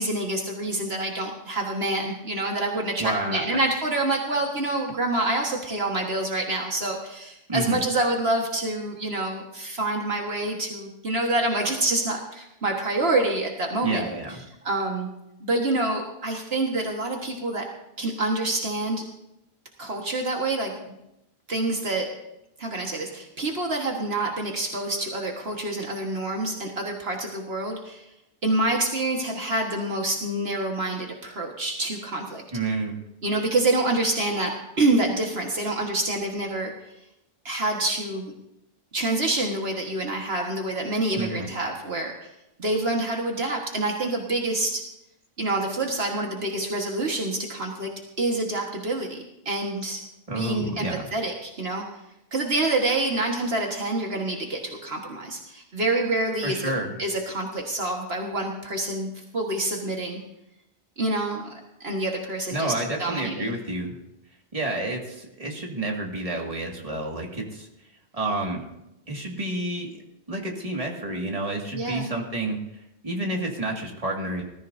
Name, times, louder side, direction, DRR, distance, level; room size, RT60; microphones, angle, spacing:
voice 1, 0.0-14.0 14.6-15.1 15.4-17.6 18.0-19.0 19.8-21.0 21.5-22.1 22.6-28.0 28.4-32.4 33.2-36.7 37.4-38.3 38.9-42.3 42.6-44.8 45.4-47.9 48.2-50.0 50.3-51.9 52.3-56.6 57.0-60.2 61.0-61.5 61.8-62.7 63.0-63.5 71.7-72.1, right 2 dB, 65° right, 1 dB, 1.8 m, -27 dB
voice 2, 3.0-3.4 7.5-7.8 13.8-14.4 32.5-33.0 41.2-41.5 50.3-51.1 56.4-57.0 62.5-64.0 64.5-67.7 68.1-68.6 69.1-70.0 70.3-72.6 73.0-74.4, right 2 dB, 35° right, 0 dB, 2.2 m, -29 dB
19.5 x 14.0 x 2.7 m, 0.87 s
omnidirectional pair, 1.1 m